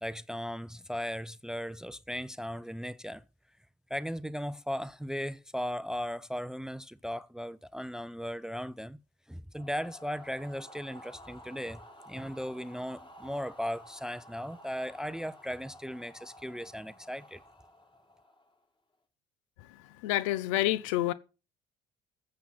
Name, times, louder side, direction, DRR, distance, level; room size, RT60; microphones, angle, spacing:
voice 1, 0.0-3.2 3.9-9.0 9.3-11.8 12.1-17.4, equal, 5° right, 0.5 m, -37 dB
sound 1, 9.5-18.6, equal, 30° left, 4.5 m, -53 dB
voice 2, 20.0-21.1, left 15 dB, 90° left, 0.6 m, -28 dB
14.0 x 7.7 x 4.2 m
supercardioid pair, 65°, 16 cm